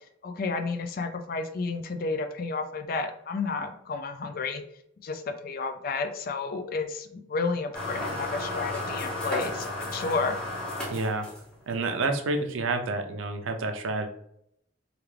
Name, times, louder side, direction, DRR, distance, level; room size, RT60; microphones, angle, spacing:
voice 1, 0.2-4.6 5.0-10.4, left 4 dB, 50° left, 7 dB, 0.4 m, -31 dB
sound 1, 7.7-11.7, left 1 dB, 5° left, 0.7 m, -33 dB
voice 2, 10.9-11.3 11.7-14.1, right 3 dB, 85° right, 6 dB, 0.5 m, -29 dB
3.3 x 2.4 x 3.2 m, 0.72 s
head